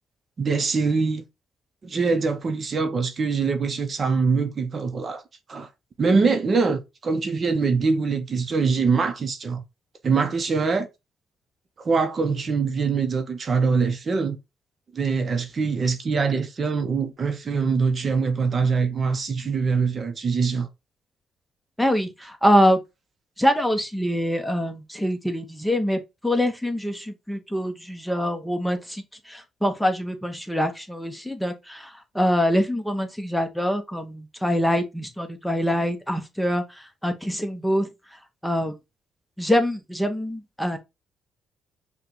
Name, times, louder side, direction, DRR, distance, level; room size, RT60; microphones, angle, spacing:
voice 1, 0.4-1.2 1.8-5.2 5.5-5.7 6.0-9.6 10.0-10.9 11.8-14.4 14.9-20.7, right 4 dB, 45° right, 0.7 m, -23 dB
voice 2, 21.8-22.8 23.4-37.9 38.4-38.8 39.4-40.8, equal, 5° left, 0.8 m, -24 dB
5.7 x 2.2 x 3.1 m
cardioid pair, 90°, 0 cm